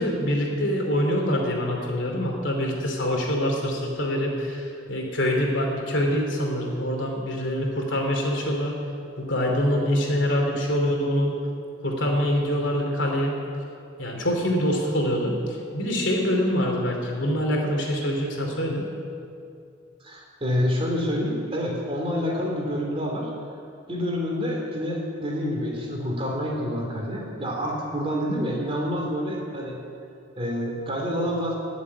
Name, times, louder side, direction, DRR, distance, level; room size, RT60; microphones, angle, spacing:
voice 1, 0.0-8.7 9.2-11.3 11.8-13.3 14.0-15.3 15.7-18.8, equal, 70° left, 0 dB, 2.9 m, -25 dB
voice 2, 20.0-23.3 23.9-29.8 30.3-31.6, equal, 30° right, -1 dB, 2.8 m, -27 dB
17.0 x 7.4 x 9.6 m, 2.5 s
head